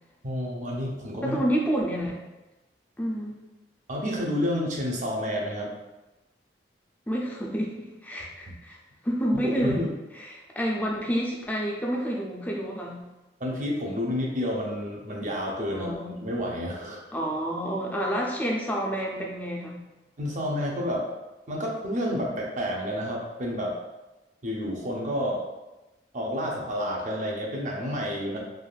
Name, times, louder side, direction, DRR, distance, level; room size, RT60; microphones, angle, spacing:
voice 1, 0.2-1.4 3.9-5.7 9.4-9.9 13.4-17.0 20.2-21.1 21.5-23.8 24.4-25.4 26.1-28.4, equal, 45° right, -2 dB, 0.6 m, -30 dB
voice 2, 1.2-2.2 3.0-3.4 7.1-8.8 9.0-9.9 10.1-13.0 15.7-16.1 17.1-19.8, equal, 10° left, -2 dB, 0.4 m, -29 dB
3.3 x 2.4 x 2.3 m, 1.0 s
head